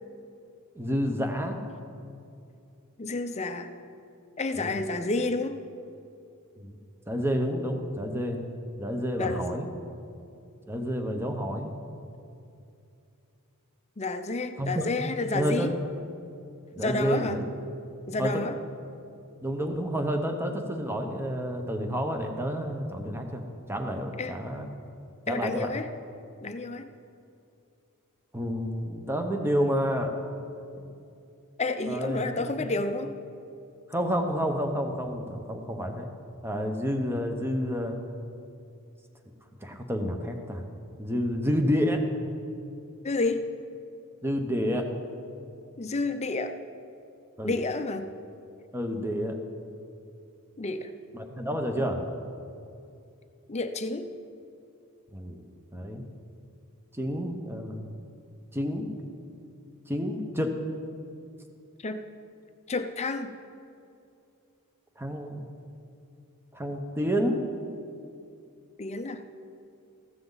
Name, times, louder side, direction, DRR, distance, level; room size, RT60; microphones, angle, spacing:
voice 1, 0.8-1.6 4.5-4.7 6.6-6.8 7.1-8.5 8.8-9.7 10.7-11.7 14.6-14.9 15.3-15.7 16.8-17.4 18.2-18.4 19.4-23.4 23.7-24.7 25.3-25.7 28.3-30.1 30.8-30.9 31.9-32.3 33.9-36.1 36.4-38.0 39.6-40.6 41.0-42.0 44.2-44.9 47.4-47.6 48.7-49.4 51.1-52.0 55.1-55.4 55.7-56.0 56.9-57.9 58.5-58.9 59.9-60.5 65.0-65.5 66.5-67.4, equal, 10° right, 4 dB, 1.0 m, -29 dB
voice 2, 3.0-3.7 4.4-5.6 9.2-9.6 14.0-15.7 16.8-17.4 18.1-18.6 24.2-24.4 25.3-25.9 26.4-26.9 31.6-33.2 43.0-43.5 45.8-46.5 47.4-48.1 50.6-50.9 53.5-54.1 61.8-62.0 62.7-63.3 68.8-69.2, left 2 dB, 30° left, 8 dB, 0.6 m, -30 dB
15.0 x 12.5 x 4.0 m, 2.6 s
head